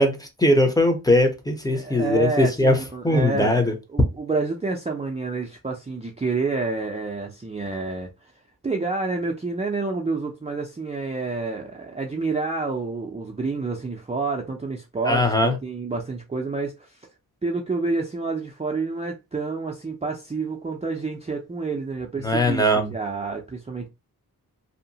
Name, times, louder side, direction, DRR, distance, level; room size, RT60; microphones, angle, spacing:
voice 1, 0.0-2.8 3.0-3.7 15.1-15.6 22.2-22.9, left 1 dB, 10° left, 0.7 m, -20 dB
voice 2, 1.7-3.6 3.9-8.3 8.6-17.1 17.4-23.9, right 3 dB, 20° right, 0.5 m, -28 dB
2.8 x 2.1 x 2.7 m
cardioid pair, 65°, 38 cm